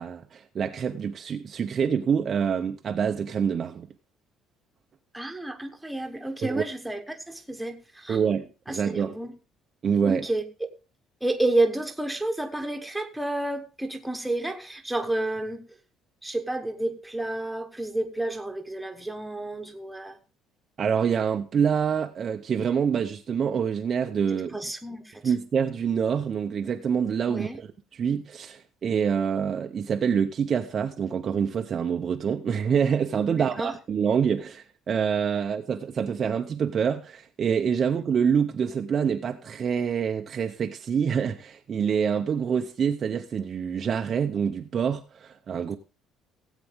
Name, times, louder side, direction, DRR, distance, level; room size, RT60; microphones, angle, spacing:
voice 1, 0.0-3.9 6.4-6.6 8.1-9.2 9.8-10.3 20.8-24.6 25.2-45.8, right 7 dB, 30° right, 0.6 m, -26 dB
voice 2, 5.1-8.2 8.7-9.3 10.0-10.4 11.2-15.6 16.2-20.2 24.3-25.2 27.3-27.6 33.3-33.7, right 2 dB, 5° right, 1.2 m, -30 dB
17.0 x 8.2 x 3.5 m
cardioid pair, 170°, 0 cm